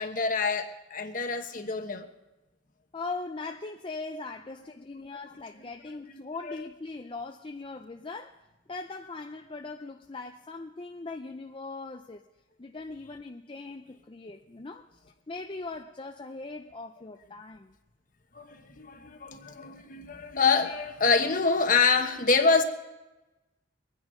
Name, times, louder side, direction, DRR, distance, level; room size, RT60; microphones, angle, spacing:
voice 1, 0.0-2.1 6.4-6.6 18.3-22.6, left 4 dB, 45° left, 1.2 m, -26 dB
voice 2, 2.9-8.4 8.7-12.2 12.6-17.7, left 3 dB, 25° left, 0.5 m, -40 dB
23.0 x 9.6 x 5.2 m
head